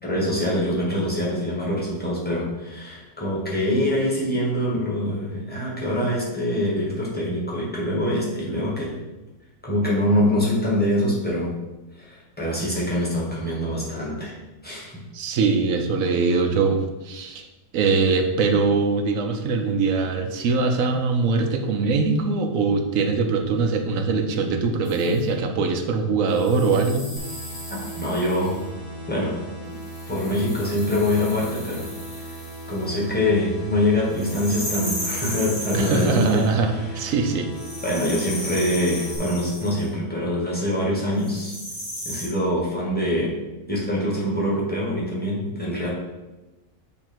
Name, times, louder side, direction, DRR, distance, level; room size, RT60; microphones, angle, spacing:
voice 1, 0.0-8.9 9.6-11.5 12.0-14.3 14.6-15.0 28.0-28.6 29.1-29.3 30.1-31.9 32.2-32.3 32.7-36.4 36.7-36.9 37.8-41.5 42.0-43.3 43.7-45.9, left 1 dB, 5° left, -5 dB, 1.5 m, -24 dB
voice 2, 15.1-17.5 17.7-27.1 35.7-37.5, right 4 dB, 70° right, 5 dB, 1.1 m, -22 dB
sound 1, 24.8-25.2 26.3-28.6 29.8-33.0 34.1-36.5 37.5-39.9 41.2-42.3, left 1 dB, 75° left, 2.7 m, -35 dB
sound 2, 27.2-39.2, right 1 dB, 25° left, 1.1 m, -38 dB
8.6 x 2.9 x 4.4 m, 1.1 s
omnidirectional pair, 1.5 m